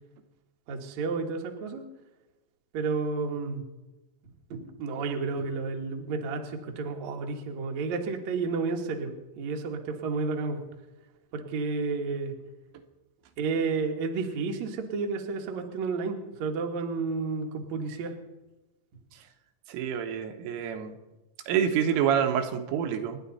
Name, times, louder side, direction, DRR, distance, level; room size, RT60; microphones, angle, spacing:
voice 1, 0.7-1.9 2.7-3.6 4.5-10.6 11.3-12.3 13.4-18.1, right 4 dB, 60° right, 2 dB, 1.9 m, -31 dB
voice 2, 19.7-21.0 21.5-23.2, right 8 dB, 80° right, 6 dB, 3.6 m, -27 dB
28.0 x 11.0 x 4.2 m, 1.1 s
omnidirectional pair, 5.7 m